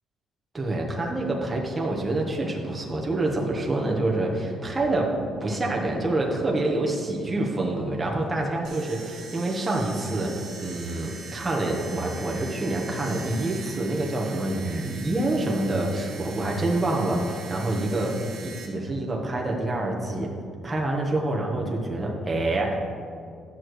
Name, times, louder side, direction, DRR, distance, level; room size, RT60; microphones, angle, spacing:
voice 1, 0.5-5.1 5.4-18.1 18.4-20.3 20.6-22.8, right 2 dB, 15° right, -1 dB, 1.1 m, -27 dB
sound 1, 8.6-18.7, right 4 dB, 65° right, 1.9 m, -42 dB
12.5 x 6.4 x 3.1 m, 2.3 s
cardioid pair, 165°, 0 cm